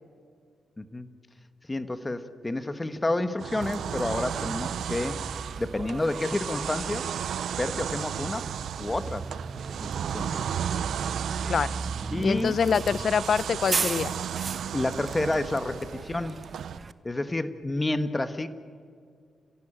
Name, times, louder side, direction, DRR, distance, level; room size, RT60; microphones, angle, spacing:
voice 1, 0.8-1.1 1.7-5.2 5.6-7.0 7.5-8.5 8.8-9.2 9.8-10.5 12.1-12.6 14.7-16.4 17.0-18.5, left 2 dB, 20° left, 10 dB, 1.5 m, -29 dB
sound 1, 3.4-16.8, right 9 dB, 80° right, 0.6 m, -34 dB
Bus, 3.6-16.9, right 4 dB, 40° right, 1.0 m, -37 dB
voice 2, 12.2-14.1, left 6 dB, 60° left, 18 dB, 0.7 m, -25 dB
29.5 x 16.0 x 9.0 m, 2.2 s
cardioid pair, 75°, 0 cm